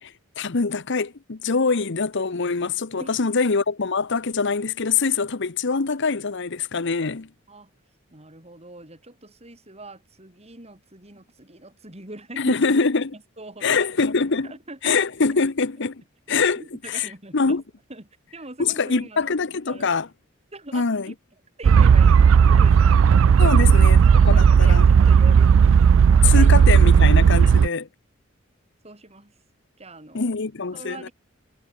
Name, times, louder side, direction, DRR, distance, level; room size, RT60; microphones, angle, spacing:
voice 1, 0.0-7.3 12.4-13.1 13.6-14.5 14.8-16.0 16.3-16.6 16.9-17.6 18.6-20.1 20.7-21.1 23.4-24.0 24.2-24.8 26.2-27.9 30.1-31.1, left 4 dB, 60° left, 0.9 m, -24 dB
voice 2, 8.1-12.7 13.1-13.8 14.4-15.0 15.3-15.4 16.5-17.6 17.9-19.4 19.6-19.9 20.5-21.2 21.6-23.0 23.4-26.6 27.5-27.6 28.8-29.3 29.8-30.3 30.7-31.1, right 2 dB, 30° right, 6.7 m, -42 dB
sound 1, 21.6-27.7, right 6 dB, 70° right, 0.3 m, -14 dB
head